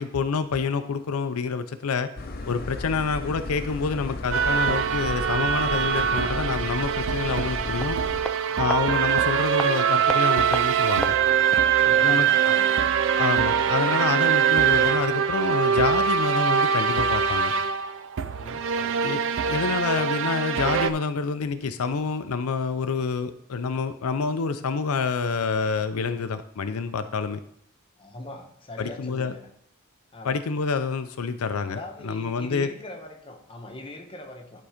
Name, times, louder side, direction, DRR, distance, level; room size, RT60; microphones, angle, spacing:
voice 1, 0.0-2.1 2.5-8.0 8.6-11.2 12.0-12.3 13.2-17.5 19.0-19.2 19.5-27.4 28.8-29.3 30.2-31.8 32.0-32.7, left 5 dB, 80° left, 9 dB, 0.5 m, -27 dB
sound 1, 2.2-8.2, left 2 dB, 45° left, 0.8 m, -35 dB
sound 2, 4.3-20.9, right 7 dB, 60° right, 0.4 m, -23 dB
sound 3, 6.8-11.8 12.0-12.1, left 1 dB, 5° left, 0.3 m, -37 dB
voice 2, 8.5-8.8 11.6-12.7 18.2-18.7 28.0-29.4 30.1-30.4 31.7-34.6, left 1 dB, 25° left, 2 dB, 1.0 m, -41 dB
11.0 x 3.8 x 5.0 m, 0.69 s
head